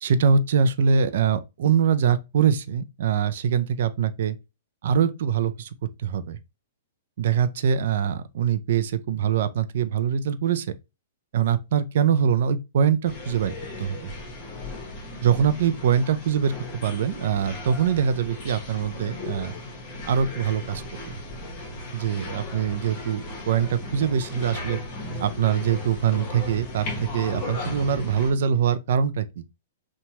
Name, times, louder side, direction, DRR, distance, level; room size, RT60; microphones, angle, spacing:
voice 1, 0.0-4.4 4.8-5.7 6.0-6.4 7.2-10.7 11.3-14.1 15.2-16.5 16.8-19.5 20.1-21.2 21.9-24.8 25.2-29.4, right 7 dB, 65° right, 0.3 m, -23 dB
sound 1, 13.0-28.3, left 2 dB, 35° left, 1.0 m, -36 dB
2.9 x 2.2 x 2.8 m
hypercardioid pair, 145°, 0 cm